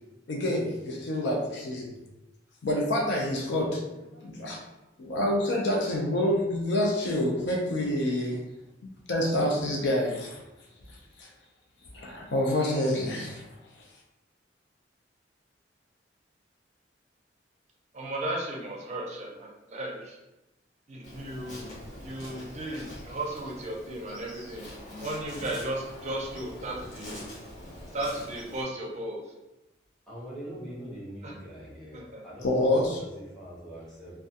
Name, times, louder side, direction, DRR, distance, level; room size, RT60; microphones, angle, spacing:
voice 1, 0.3-1.9 2.6-3.8 4.1-4.6 5.0-8.4 9.1-10.4 11.2-11.3 11.9-13.4 32.4-33.0, left 1 dB, 65° left, -1 dB, 0.4 m, -27 dB
voice 2, 17.9-20.2 20.9-21.6 22.0-24.6 25.0-27.2 27.9-29.3 31.2-31.3 31.9-32.2, right 1 dB, 40° right, -2 dB, 0.5 m, -35 dB
Insect, 21.0-28.6, left 1 dB, 40° left, 0.8 m, -44 dB
voice 3, 30.1-34.2, right 1 dB, 5° left, -10 dB, 0.9 m, -42 dB
2.3 x 2.2 x 2.7 m, 0.97 s
head